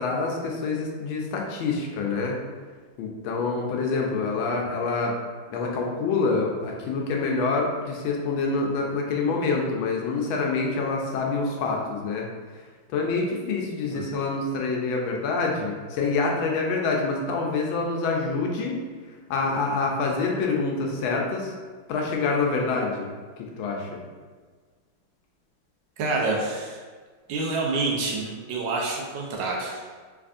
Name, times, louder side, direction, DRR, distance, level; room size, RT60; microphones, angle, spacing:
voice 1, 0.0-2.4 3.0-5.2 5.5-12.3 12.9-18.8 19.3-21.5 21.9-23.1 23.4-24.0, left 4 dB, 80° left, 0 dB, 1.4 m, -26 dB
voice 2, 26.0-26.8 27.3-29.8, right 3 dB, 75° right, -2 dB, 1.3 m, -27 dB
3.5 x 3.4 x 2.5 m, 1.5 s
omnidirectional pair, 2.2 m